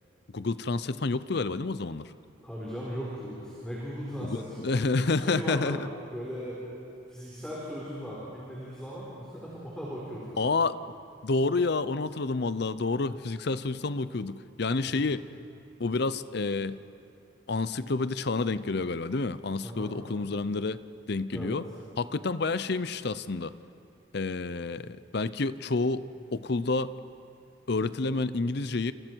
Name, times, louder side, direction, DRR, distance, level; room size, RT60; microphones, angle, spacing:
voice 1, 0.3-2.1 4.3-5.9 10.4-10.8 11.2-15.2 15.8-16.8 17.5-20.8 21.1-21.6 22.0-23.5 24.1-26.9 27.7-28.9, left 3 dB, 55° left, 15 dB, 0.6 m, -29 dB
voice 2, 2.4-4.6 5.1-5.8 6.1-6.6 7.1-10.3 14.8-15.1 19.6-19.9 21.3-21.6, equal, 5° left, -7 dB, 4.0 m, -38 dB
29.0 x 27.5 x 4.6 m, 2.6 s
head